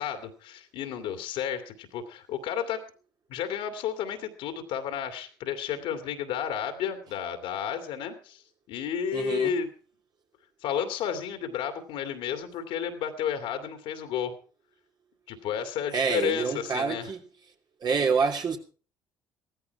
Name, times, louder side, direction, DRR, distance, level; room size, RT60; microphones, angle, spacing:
voice 1, 0.0-2.8 3.3-8.4 8.7-9.7 10.6-14.3 15.3-17.1, left 8 dB, 65° left, 2.4 m, -32 dB
voice 2, 9.1-9.5 15.9-17.2 17.8-18.6, right 5 dB, 45° right, 2.9 m, -27 dB
16.5 x 14.0 x 4.6 m
figure-of-eight pair, 50°, 10 cm